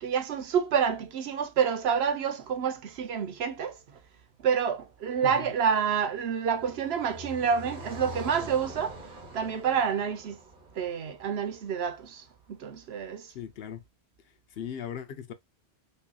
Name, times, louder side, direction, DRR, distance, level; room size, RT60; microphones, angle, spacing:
voice 1, 0.0-3.8 4.4-9.0 9.3-10.4 10.7-13.3, right 7 dB, 80° right, 0.9 m, -28 dB
Car passing by, 5.0-12.2, equal, 55° right, 1.3 m, -45 dB
voice 2, 5.2-5.5 13.3-13.8 14.5-15.3, left 8 dB, 70° left, 0.8 m, -38 dB
5.3 x 2.7 x 2.2 m
omnidirectional pair, 1.1 m